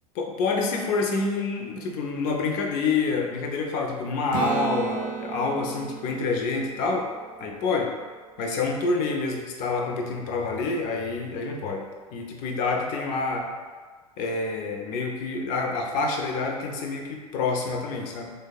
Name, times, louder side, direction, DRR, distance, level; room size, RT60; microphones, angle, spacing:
voice 1, 0.2-7.1 7.4-7.9 8.4-11.8 12.1-13.5 14.2-18.3, left 4 dB, 45° left, 1 dB, 0.4 m, -27 dB
Acoustic guitar / Strum, 4.3-8.1 12.9-13.0, right 7 dB, 45° right, 0.4 m, -34 dB
3.2 x 2.0 x 2.3 m, 1.5 s
figure-of-eight pair, 80°, 19 cm